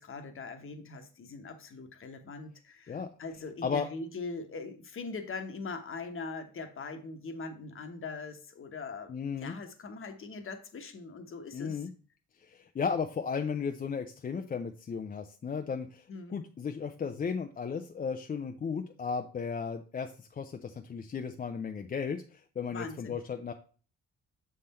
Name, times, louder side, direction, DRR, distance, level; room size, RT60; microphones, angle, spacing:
voice 1, 0.0-9.1 9.4-11.9 16.1-16.4 22.7-23.2, left 4 dB, 45° left, 6 dB, 1.1 m, -41 dB
voice 2, 9.1-9.6 11.5-11.9 12.4-16.0 16.3-23.5, left 6 dB, 30° left, 6 dB, 0.5 m, -35 dB
6.5 x 3.8 x 4.1 m, 0.39 s
cardioid pair, 90°, 30 cm